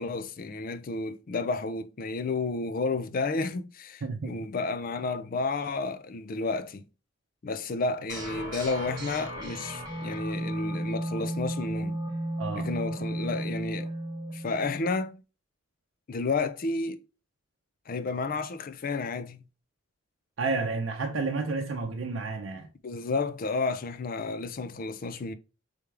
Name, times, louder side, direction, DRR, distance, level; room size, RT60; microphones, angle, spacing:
voice 1, 0.0-6.9 7.4-12.0 12.6-13.9 14.3-15.2 16.1-17.0 17.9-19.4 22.8-25.3, left 3 dB, 45° left, 0.5 m, -31 dB
voice 2, 4.0-4.4 12.4-12.7 20.4-22.7, right 3 dB, 75° right, 0.6 m, -31 dB
sound 1, 8.1-15.0, right 1 dB, 20° right, 1.4 m, -34 dB
3.5 x 3.4 x 3.3 m
head